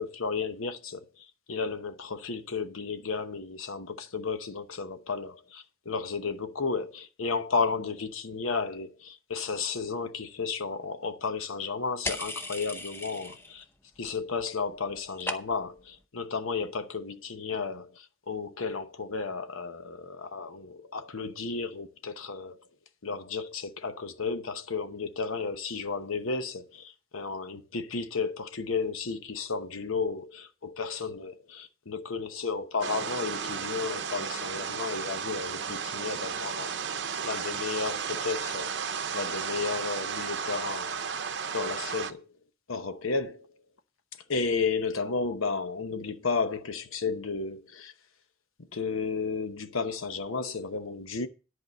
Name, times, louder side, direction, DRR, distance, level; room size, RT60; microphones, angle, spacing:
voice 1, 0.0-13.6 14.0-22.6 23.0-38.8 39.1-41.1 41.4-42.3 42.7-43.5 44.3-47.9 48.7-51.3, left 4 dB, 85° left, 1.0 m, -33 dB
sound 1, 12.0-13.6 13.9-14.5 14.7-15.8, left 2 dB, 10° left, 0.7 m, -37 dB
sound 2, 32.8-42.1, right 6 dB, 55° right, 0.8 m, -34 dB
11.0 x 4.8 x 7.4 m
head